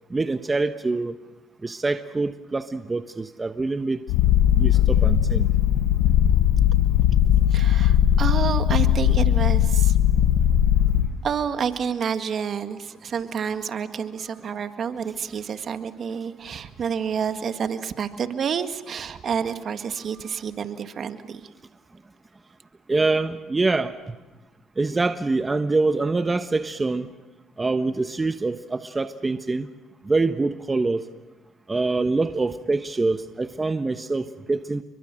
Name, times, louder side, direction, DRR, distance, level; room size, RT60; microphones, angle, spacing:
voice 1, 0.1-1.1 1.6-4.0 4.5-5.5 22.9-24.2 24.8-27.1 27.6-29.7 30.0-31.0 31.7-34.8, right 3 dB, 25° right, 9 dB, 1.2 m, -25 dB
Purr, 4.1-11.1, left 10 dB, 85° left, 1.5 m, -19 dB
voice 2, 7.5-10.0 11.2-21.5, right 7 dB, 50° right, 9 dB, 1.8 m, -29 dB
29.0 x 23.0 x 7.7 m, 1.1 s
supercardioid pair, 75°, 0 cm